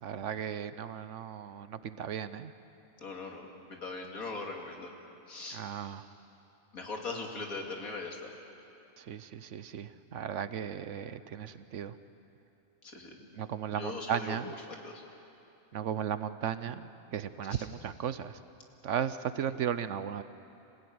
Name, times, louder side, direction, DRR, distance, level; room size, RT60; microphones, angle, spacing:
voice 1, 0.0-2.5 5.5-6.0 9.0-12.0 13.3-14.5 15.7-18.4 18.8-20.2, right 8 dB, 65° right, 13 dB, 1.0 m, -36 dB
voice 2, 3.0-4.9 5.3-5.6 6.7-8.3 12.8-13.2 13.7-14.4 14.8-15.0, left 3 dB, 85° left, 1 dB, 2.9 m, -40 dB
26.5 x 16.5 x 9.5 m, 2.8 s
omnidirectional pair, 1.5 m